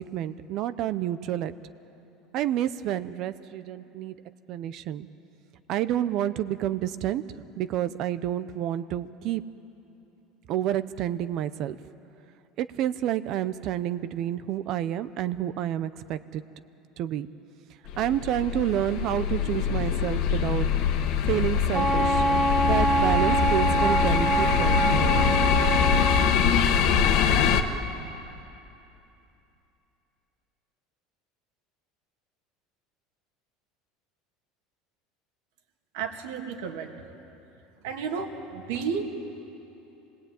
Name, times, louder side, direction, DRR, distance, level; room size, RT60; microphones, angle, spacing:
voice 1, 0.0-1.5 2.3-4.2 4.5-5.1 5.7-9.4 10.5-11.8 12.6-16.4 17.0-17.3 18.0-20.7 21.2-22.2 22.7-25.2, right 12 dB, 45° right, 13 dB, 0.6 m, -29 dB
sound 1, 17.9-27.6, left 7 dB, 55° left, 1.4 m, -24 dB
Wind instrument woodwind instrument, 21.7-26.3, right 2 dB, 15° right, 1.8 m, -25 dB
voice 2, 35.9-36.9 37.8-39.0, right 6 dB, 80° right, 3 dB, 2.7 m, -32 dB
26.5 x 19.0 x 9.2 m, 2.9 s
cardioid pair, 155°, 0 cm